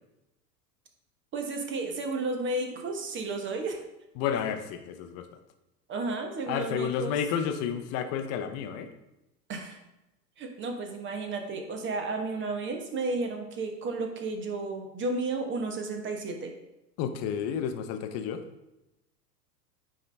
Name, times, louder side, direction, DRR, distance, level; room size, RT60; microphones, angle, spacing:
voice 1, 1.3-3.8 5.9-7.1 9.5-9.8 10.4-16.5, right 3 dB, 25° right, 4 dB, 1.0 m, -32 dB
voice 2, 4.2-5.3 6.5-8.9 17.0-18.4, left 8 dB, 30° left, 8 dB, 0.7 m, -31 dB
9.1 x 3.8 x 3.3 m, 0.93 s
hypercardioid pair, 100°, 49 cm